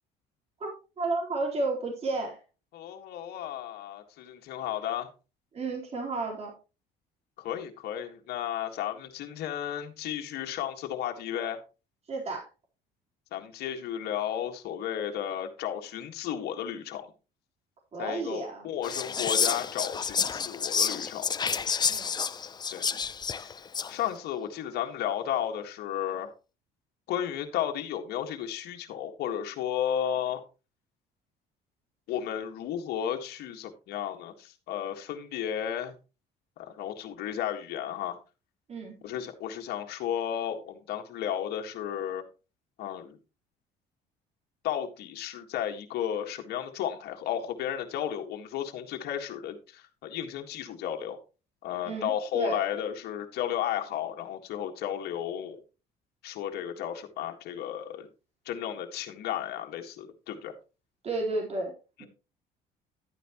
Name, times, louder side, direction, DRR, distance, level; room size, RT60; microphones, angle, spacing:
voice 1, 1.0-2.4 5.5-6.5 12.1-12.5 17.9-18.7 21.9-22.1 38.7-39.0 51.8-52.6 61.0-61.7 62.0-62.1, right 3 dB, 40° right, 4.0 m, -32 dB
voice 2, 2.7-5.1 7.4-11.6 13.3-17.1 18.0-21.4 22.7-22.9 23.4-23.5 23.8-26.3 27.1-30.4 32.1-35.9 36.6-38.2 39.0-42.2 42.8-43.2 44.6-51.2 51.6-55.6 56.2-58.1 58.5-60.5 62.0-62.1, left 10 dB, 70° left, 1.8 m, -33 dB
Whispering, 18.8-24.0, left 6 dB, 25° left, 0.5 m, -29 dB
12.0 x 9.3 x 3.0 m
cardioid pair, 110°, 17 cm